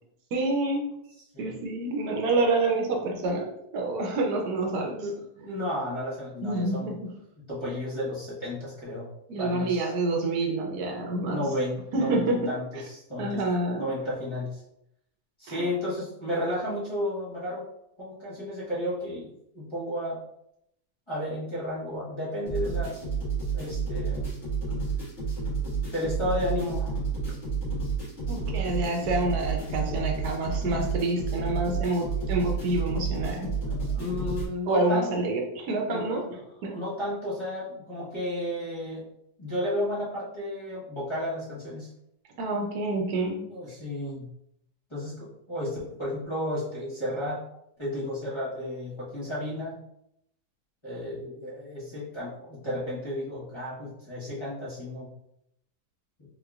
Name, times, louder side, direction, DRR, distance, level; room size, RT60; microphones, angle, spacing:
voice 1, 0.3-0.9 1.4-3.5 3.7-5.0 5.4-5.5 6.4-7.0 9.3-11.4 11.9-12.4 13.2-13.8 15.5-15.7 28.3-33.5 34.7-36.3 36.6-36.7 42.4-43.4, right 2 dB, 80° right, 2 dB, 1.2 m, -27 dB
voice 2, 5.4-6.9 7.5-9.1 9.4-9.9 11.2-13.4 13.8-14.6 15.4-17.6 18.0-19.3 19.5-20.2 21.1-22.9 23.5-24.3 25.9-26.9 33.7-35.1 35.9-39.0 39.4-41.9 43.5-44.3 44.9-47.4 47.8-49.8 50.8-55.1, left 1 dB, 20° left, -9 dB, 1.1 m, -33 dB
sound 1, 22.5-34.5, right 4 dB, 45° left, 1.9 m, -30 dB
3.9 x 3.1 x 2.4 m, 0.78 s
omnidirectional pair, 1.7 m